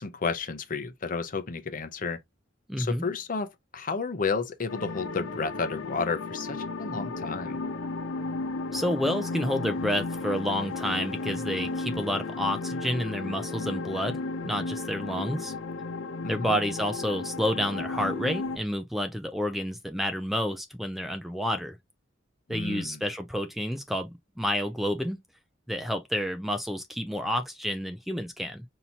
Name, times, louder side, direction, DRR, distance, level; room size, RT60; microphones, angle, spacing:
voice 1, 0.0-2.2 2.8-7.6 16.2-16.5 22.5-23.0, left 4 dB, 45° left, 0.6 m, -32 dB
voice 2, 2.7-3.1 8.7-15.5 16.3-21.8 22.5-25.2 25.7-28.6, equal, ahead, 0.4 m, -30 dB
sound 1, 4.7-18.6, left 3 dB, 85° left, 0.6 m, -34 dB
5.5 x 2.8 x 2.7 m
head